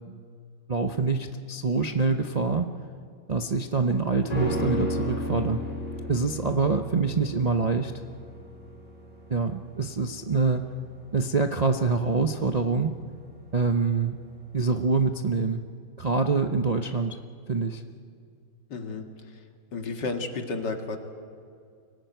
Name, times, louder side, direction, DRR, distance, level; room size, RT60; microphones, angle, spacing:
voice 1, 0.7-2.7 3.3-5.6 6.1-8.0 9.3-10.7 11.1-12.9 13.5-14.2 14.5-15.6 16.0-17.2 17.5-17.8, right 4 dB, 35° right, 5 dB, 0.6 m, -25 dB
sound 1, 4.3-13.7 14.0-14.1, left 1 dB, 20° left, 5.1 m, -34 dB
voice 2, 18.7-19.4 19.7-21.0, left 3 dB, 75° left, 5 dB, 2.6 m, -32 dB
25.0 x 18.0 x 9.2 m, 2.3 s
omnidirectional pair, 1.9 m